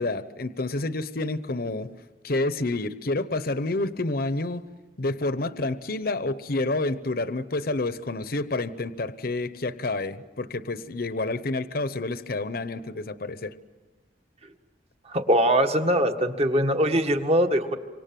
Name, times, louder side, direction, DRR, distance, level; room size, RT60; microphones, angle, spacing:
voice 1, 0.0-1.9 2.2-4.7 5.0-13.5, left 2 dB, 60° left, 13 dB, 0.9 m, -29 dB
voice 2, 15.1-17.8, equal, 35° right, 6 dB, 1.7 m, -22 dB
28.0 x 25.0 x 7.6 m, 1.2 s
head